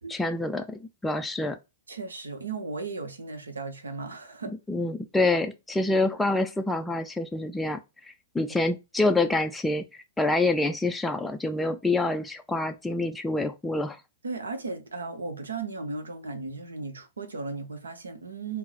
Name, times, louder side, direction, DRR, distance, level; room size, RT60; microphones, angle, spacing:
voice 1, 0.1-1.6 4.7-7.8 8.3-9.9 10.2-14.0, left 2 dB, 5° left, 0.3 m, -26 dB
voice 2, 1.9-4.5 14.2-18.6, right 3 dB, 75° right, 0.7 m, -36 dB
3.7 x 2.0 x 4.1 m
figure-of-eight pair, 105°, 0 cm